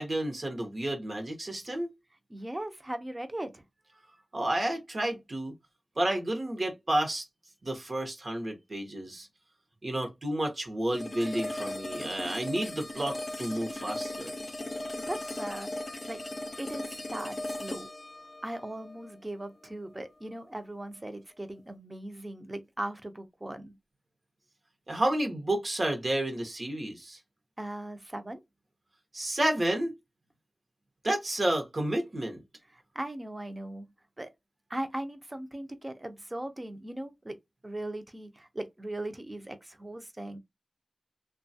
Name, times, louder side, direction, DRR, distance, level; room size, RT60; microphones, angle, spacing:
voice 1, 0.0-1.9 4.3-5.5 6.0-7.2 7.6-9.3 9.8-14.3 24.9-27.2 29.1-29.9 31.0-32.4, right 1 dB, 55° right, 0.8 m, -31 dB
voice 2, 2.3-3.6 14.9-15.7 16.1-16.2 16.6-17.9 18.4-23.8 27.6-28.4 32.7-33.9 34.2-34.3 34.7-37.4 37.6-40.4, right 1 dB, 25° right, 0.5 m, -38 dB
sound 1, 10.9-20.0, left 1 dB, 45° left, 0.4 m, -38 dB
3.0 x 2.2 x 2.7 m
wide cardioid pair, 75°, 0 cm